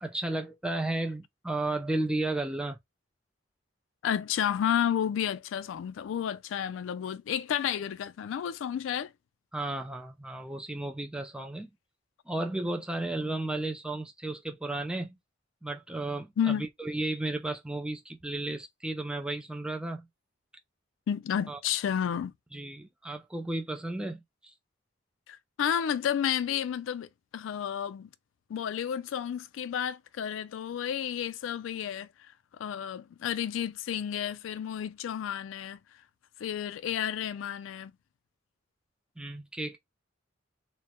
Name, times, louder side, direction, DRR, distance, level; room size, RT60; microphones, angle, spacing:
voice 1, 0.0-2.8 9.5-11.7 12.3-15.2 15.6-20.1 21.5-21.6 22.5-24.5 39.2-39.8, right 2 dB, 5° right, 0.3 m, -33 dB
voice 2, 4.0-9.1 16.4-16.6 21.1-22.3 25.3-28.1 28.5-32.1 32.6-35.8 36.4-37.9, left 9 dB, 80° left, 0.3 m, -31 dB
2.1 x 2.0 x 2.9 m
head